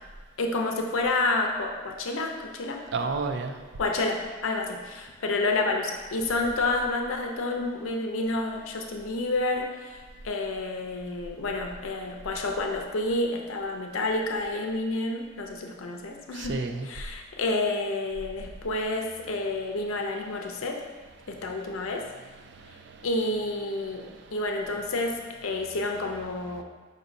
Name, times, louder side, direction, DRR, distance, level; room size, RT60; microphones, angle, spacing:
voice 1, 0.4-2.8 3.8-20.8 21.3-22.1 23.0-26.6, left 2 dB, 80° left, 3 dB, 0.6 m, -29 dB
voice 2, 2.9-3.6 16.3-16.9 22.4-23.2 23.5-23.9, right 4 dB, 55° right, 6 dB, 0.4 m, -33 dB
5.2 x 2.6 x 4.0 m, 1.3 s
head